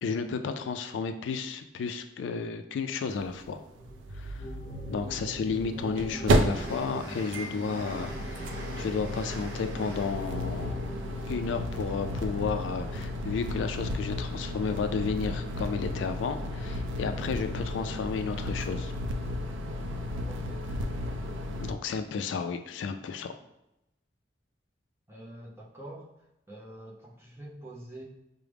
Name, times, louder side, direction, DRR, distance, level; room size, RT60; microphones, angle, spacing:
voice 1, 0.0-3.6 4.1-4.5 4.9-10.8 11.3-18.9 21.6-23.3, left 5 dB, 85° left, 8 dB, 0.3 m, -32 dB
sound 1, 3.2-3.3 3.4-3.5 5.4-21.7, equal, 90° right, 0.4 m, -32 dB
sound 2, 3.8-13.1, equal, 30° left, 0.6 m, -43 dB
Train, 4.3-4.4 4.9-12.6, right 2 dB, 75° right, 0.8 m, -47 dB
voice 2, 5.0-5.3 20.3-20.7 25.1-26.1 26.5-28.0, right 1 dB, 15° right, -4 dB, 0.6 m, -45 dB
4.6 x 2.0 x 3.3 m, 0.89 s
head